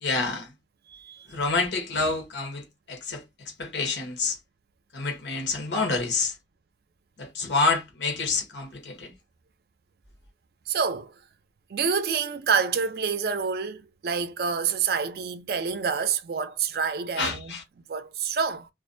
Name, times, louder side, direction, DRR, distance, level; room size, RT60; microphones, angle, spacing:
voice 1, 0.0-0.5 1.3-3.2 3.6-4.4 4.9-6.3 7.2-9.1 17.2-17.6, left 3 dB, 85° left, 0.9 m, -28 dB
voice 2, 0.9-1.3 10.7-11.1 11.7-17.6 17.9-18.7, right 6 dB, 60° right, 0.4 m, -27 dB
2.4 x 2.1 x 2.5 m
head